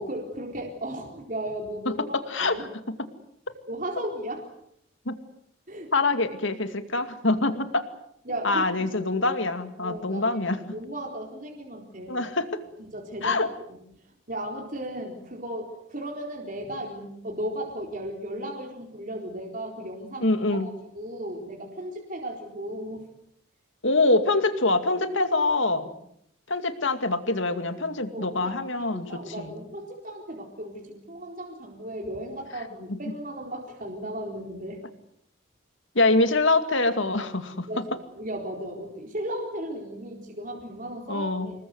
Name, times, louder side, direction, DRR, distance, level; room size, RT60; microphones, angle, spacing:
voice 1, 0.0-2.0 2.4-2.6 3.7-4.4 5.7-5.9 8.3-8.6 9.8-12.2 12.8-13.8 14.3-20.3 20.6-23.1 28.1-34.8 37.7-37.8 38.1-41.5, right 1 dB, 40° right, 0 dB, 4.2 m, -36 dB
voice 2, 2.1-3.0 5.1-5.2 5.9-7.9 8.4-10.6 12.1-12.6 13.2-13.5 20.2-20.7 23.8-25.9 26.5-29.5 32.9-33.0 35.9-37.8 41.1-41.5, left 2 dB, 65° left, 8 dB, 2.4 m, -25 dB
28.0 x 20.5 x 8.0 m, 0.73 s
head